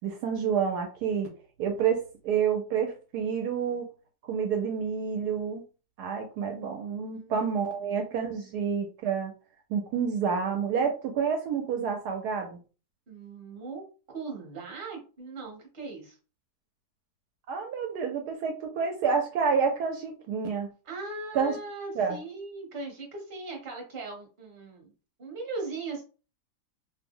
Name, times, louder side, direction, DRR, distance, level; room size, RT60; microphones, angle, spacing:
voice 1, 0.0-1.3 1.6-3.9 4.3-5.6 6.0-9.3 9.7-12.6 17.5-20.7 21.3-21.6 22.0-22.2, right 6 dB, 75° right, 3 dB, 1.1 m, -29 dB
voice 2, 7.1-7.5 7.9-8.5 13.1-13.8 14.1-16.2 20.8-24.9 25.2-26.0, right 3 dB, 35° right, 1 dB, 1.0 m, -39 dB
2.9 x 2.0 x 3.5 m, 0.35 s
omnidirectional pair, 1.8 m